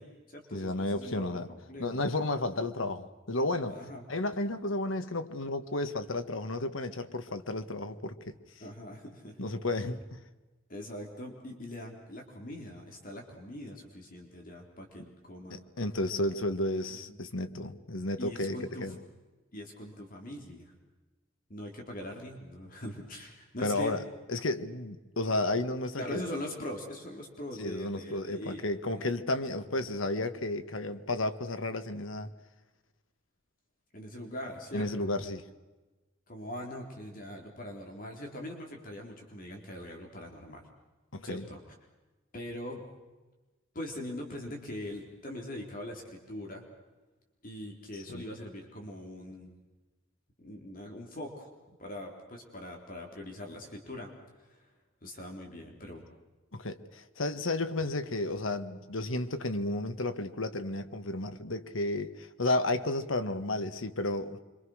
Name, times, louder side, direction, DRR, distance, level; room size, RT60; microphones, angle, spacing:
voice 1, 0.0-2.0 3.7-4.0 8.6-9.5 10.7-15.6 17.1-17.2 18.2-18.9 19.5-20.7 21.5-24.0 26.0-28.6 28.9-29.1 33.9-35.1 36.3-40.7 41.2-41.6 42.3-42.8 43.7-46.6 47.4-49.5 50.4-51.5 51.8-54.1 54.4-54.7 55.0-56.1, left 1 dB, 45° left, 3.8 m, -42 dB
voice 2, 0.5-1.5 1.8-3.7 4.1-8.3 9.4-10.2 15.5-19.0 23.6-24.0 24.3-26.2 27.6-32.3 34.7-35.4 41.1-41.4 48.1-48.2 56.5-64.4, left 2 dB, 90° left, 1.7 m, -32 dB
26.5 x 25.0 x 6.5 m
head